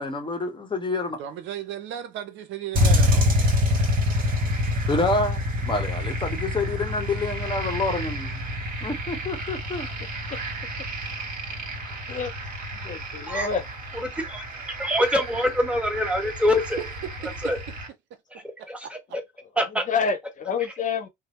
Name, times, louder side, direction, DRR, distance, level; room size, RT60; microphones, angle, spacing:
voice 1, 0.0-1.2 4.9-8.4 8.8-9.9, left 2 dB, 25° left, 0.9 m, -28 dB
voice 2, 1.2-3.3 16.8-17.6 18.3-18.9, right 10 dB, 65° right, 0.6 m, -36 dB
sound 1, 2.7-17.9, left 1 dB, 45° right, 1.3 m, -27 dB
voice 3, 12.8-13.6 19.9-21.1, left 5 dB, 40° left, 0.6 m, -27 dB
voice 4, 14.1-14.4 14.8-16.8 17.4-17.6 18.7-18.8 19.6-19.9, left 1 dB, 5° right, 0.9 m, -24 dB
2.7 x 2.0 x 3.0 m
supercardioid pair, 70°, 20 cm